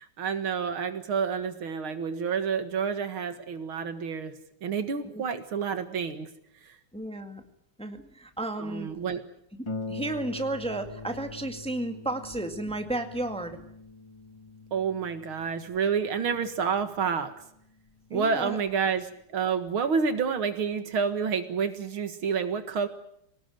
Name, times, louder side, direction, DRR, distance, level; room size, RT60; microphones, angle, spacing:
voice 1, 0.0-4.3 4.6-6.3 6.6-6.7 8.6-9.2 14.7-17.3 18.1-22.9, right 6 dB, 75° right, 9 dB, 2.5 m, -29 dB
voice 2, 6.9-7.4 7.8-8.9 9.9-13.6 18.1-18.6, right 2 dB, 5° left, 6 dB, 1.8 m, -33 dB
Harp, 9.7-18.8 19.7-19.8 20.2-20.3, left 3 dB, 20° left, 0.8 m, -43 dB
23.5 x 18.5 x 9.3 m, 0.75 s
omnidirectional pair, 2.3 m